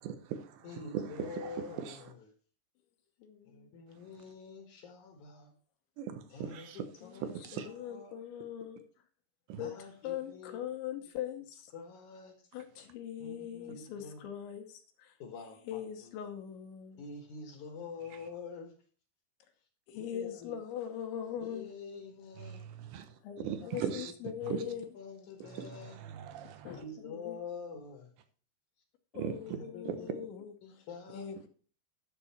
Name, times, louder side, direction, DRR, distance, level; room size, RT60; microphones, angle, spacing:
voice 1, 0.0-0.6 0.9-1.1 1.4-1.9 6.0-6.8 7.4-7.7 9.5-9.6 22.8-23.2 23.5-24.1 24.5-24.6 25.6-26.7 29.1-29.3 29.9-30.0, right 9 dB, 80° right, 3.1 m, -39 dB
voice 2, 0.6-2.3 3.5-5.5 6.3-7.3 7.7-8.2 9.6-10.6 11.0-11.1 11.7-12.5 13.2-14.2 15.2-16.2 17.0-18.8 19.6-19.7 19.9-20.5 21.4-22.6 23.4-24.1 24.6-26.0 26.7-28.1 29.5-30.1 30.6-31.3, left 4 dB, 60° left, 2.1 m, -47 dB
voice 3, 3.2-3.7 7.0-8.8 9.6-9.7 10.0-11.7 12.5-15.2 15.7-17.0 19.9-21.7 23.2-24.9 26.4-27.4 29.1-30.5 31.1-31.5, left 9 dB, 85° left, 3.3 m, -41 dB
11.5 x 6.9 x 4.3 m
omnidirectional pair, 5.3 m